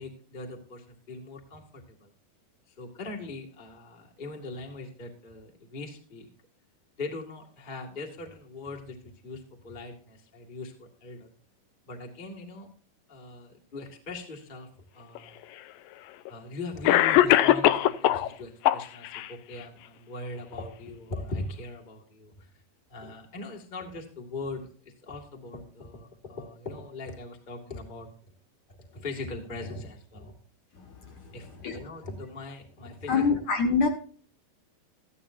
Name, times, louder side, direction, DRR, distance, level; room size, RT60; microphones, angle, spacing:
voice 1, 0.0-2.1 2.7-6.3 7.0-11.3 11.8-12.7 13.1-15.4 16.3-22.5 22.9-28.1 28.7-30.3 31.3-33.4, left 2 dB, 25° left, 1 dB, 1.1 m, -40 dB
Cough, 15.2-15.3 16.3-16.4 16.9-18.3 18.6-19.3, left 14 dB, 80° left, 2.1 m, -20 dB
voice 2, 33.1-33.9, left 5 dB, 60° left, 4 dB, 2.2 m, -24 dB
14.0 x 12.5 x 2.6 m, 0.43 s
omnidirectional pair, 4.5 m